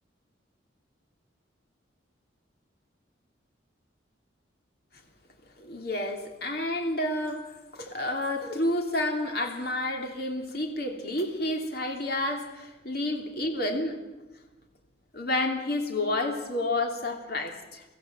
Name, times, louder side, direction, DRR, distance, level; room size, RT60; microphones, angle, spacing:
voice 1, 5.6-7.4 7.7-14.0 15.1-17.8, left 1 dB, 50° left, 3 dB, 3.0 m, -30 dB
24.0 x 15.5 x 7.8 m, 1.1 s
head